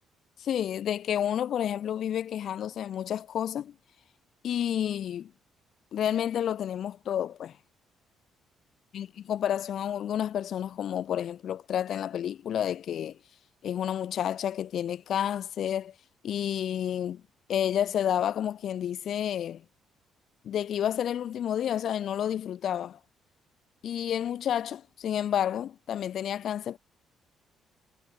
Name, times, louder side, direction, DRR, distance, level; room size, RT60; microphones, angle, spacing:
voice 1, 0.4-3.7 4.4-5.3 5.9-7.5 8.9-13.2 13.6-15.9 16.2-17.2 17.5-19.6 20.4-23.0 23.8-26.8, left 10 dB, 50° left, 2.8 m, -30 dB
cardioid pair, 170°, 0 cm